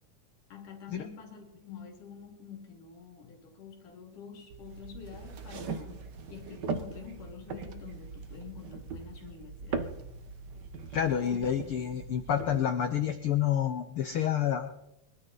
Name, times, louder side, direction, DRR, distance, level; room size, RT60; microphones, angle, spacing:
voice 1, 0.5-10.0 11.2-12.0, left 6 dB, 65° left, 3 dB, 4.3 m, -47 dB
sound 1, 4.5-12.6, right 4 dB, 85° right, 0.9 m, -40 dB
voice 2, 10.9-14.7, left 9 dB, 85° left, 8 dB, 1.2 m, -29 dB
24.5 x 13.0 x 4.2 m, 0.85 s
omnidirectional pair, 3.9 m